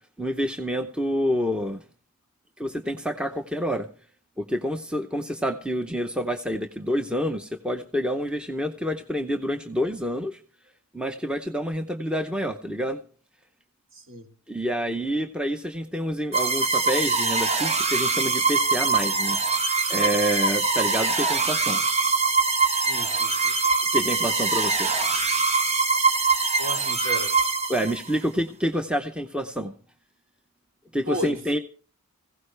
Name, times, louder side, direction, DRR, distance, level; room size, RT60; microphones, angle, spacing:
voice 1, 0.2-1.8 2.6-3.9 4.4-10.4 10.9-13.0 14.5-19.6 19.9-21.8 23.9-24.9 27.7-29.7 30.9-31.6, equal, 5° right, 0.7 m, -28 dB
voice 2, 13.9-14.3 22.8-23.6 26.6-27.4 31.1-31.4, equal, 60° right, 3.4 m, -34 dB
sound 1, 16.3-28.2, right 4 dB, 30° right, 1.2 m, -23 dB
18.5 x 16.0 x 3.3 m
head